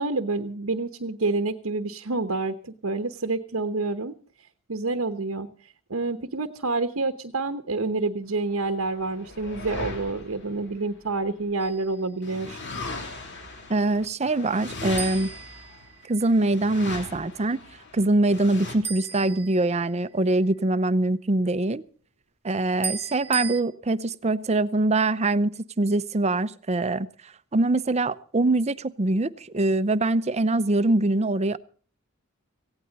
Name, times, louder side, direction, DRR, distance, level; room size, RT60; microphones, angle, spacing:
voice 1, 0.0-4.1 4.7-5.5 5.9-12.6, right 3 dB, 80° right, 8 dB, 1.0 m, -28 dB
sound 1, 8.6-11.7 12.2-18.8, left 3 dB, 55° left, 3.1 m, -38 dB
sound 2, 11.6-12.0 15.0-16.3 18.8-20.1 22.8-23.6, right 5 dB, 10° right, 1.4 m, -36 dB
voice 2, 13.7-15.3 16.1-17.6 17.9-21.8 22.4-27.1 27.5-31.6, right 2 dB, 30° right, 15 dB, 0.6 m, -23 dB
18.0 x 16.0 x 4.1 m, 0.42 s
head